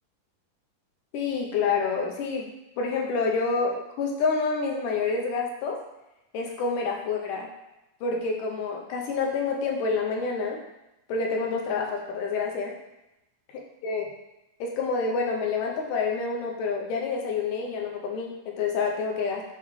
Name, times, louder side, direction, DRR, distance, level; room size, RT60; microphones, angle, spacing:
voice 1, 1.1-5.8 6.3-7.5 8.0-10.6 11.1-12.7 13.8-14.1 14.6-19.5, left 4 dB, 75° left, 0 dB, 2.3 m, -28 dB
9.3 x 3.1 x 3.2 m, 0.93 s
omnidirectional pair, 3.9 m